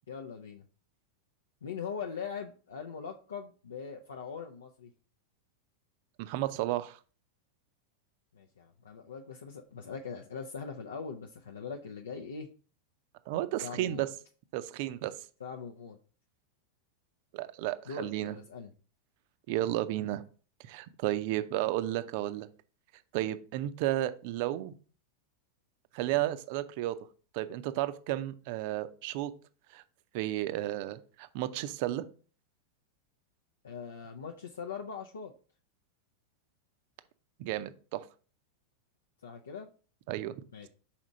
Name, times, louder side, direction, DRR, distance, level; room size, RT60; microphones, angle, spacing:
voice 1, 0.1-0.6 1.6-4.9 8.3-12.5 13.6-14.1 15.4-16.0 17.9-18.7 33.6-35.3 39.2-39.7 40.5-40.7, left 6 dB, 70° left, 2 dB, 0.5 m, -41 dB
voice 2, 6.2-7.0 13.3-14.1 14.5-15.1 17.3-18.3 19.5-20.2 20.6-22.5 23.1-24.7 25.9-27.0 27.3-29.3 29.7-29.8 30.1-32.1 37.4-38.0 40.1-40.3, right 14 dB, 45° right, 13 dB, 0.5 m, -33 dB
6.0 x 4.2 x 3.8 m, 0.39 s
figure-of-eight pair, 90°, 0 cm